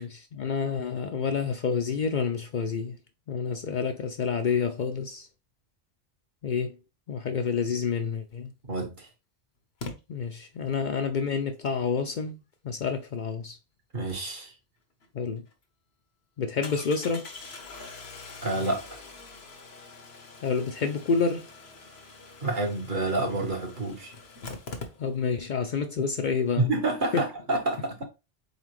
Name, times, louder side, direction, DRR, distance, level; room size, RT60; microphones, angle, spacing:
voice 1, 0.0-3.0 3.3-5.3 6.4-6.8 7.1-8.5 10.1-12.4 12.6-13.6 15.1-15.4 16.4-17.3 20.4-21.5 25.0-26.6 27.1-27.2, left 5 dB, 55° left, 0.6 m, -28 dB
Engine starting, 8.3-8.4 9.8-9.9 15.0-15.1 15.5-15.6 16.6-25.4 25.7-25.8 26.0-26.1, left 3 dB, 80° left, 1.2 m, -44 dB
voice 2, 8.7-9.1 13.9-14.5 18.4-18.9 22.4-24.1 26.6-28.1, right 2 dB, 50° right, 1.3 m, -28 dB
4.1 x 4.1 x 3.0 m
omnidirectional pair, 1.0 m